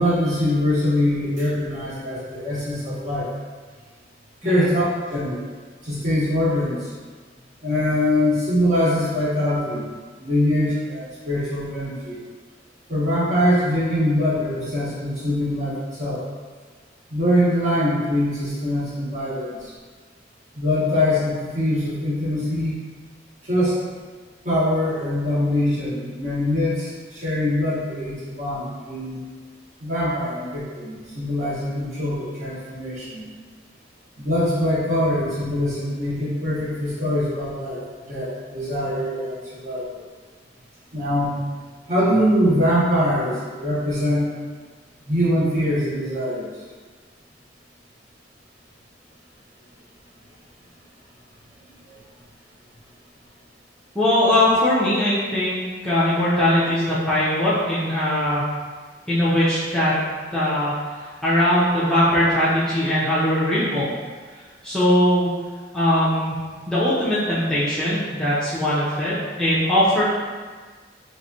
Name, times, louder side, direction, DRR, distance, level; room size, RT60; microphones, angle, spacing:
voice 1, 0.0-3.3 4.4-5.4 5.8-6.9 7.6-9.9 10.2-12.2 12.9-16.2 17.1-19.7 20.5-22.7 23.4-23.8 24.4-29.2 29.8-33.3 34.2-40.0 40.9-41.4 41.9-44.3 45.0-46.5, left 1 dB, 40° right, -9 dB, 1.1 m, -23 dB
voice 2, 53.9-58.4 59.1-59.9 60.3-60.7 61.2-63.9 64.6-65.3 65.7-66.4 66.7-70.0, left 1 dB, 5° left, -12 dB, 0.6 m, -20 dB
3.4 x 3.1 x 2.7 m, 1.5 s
head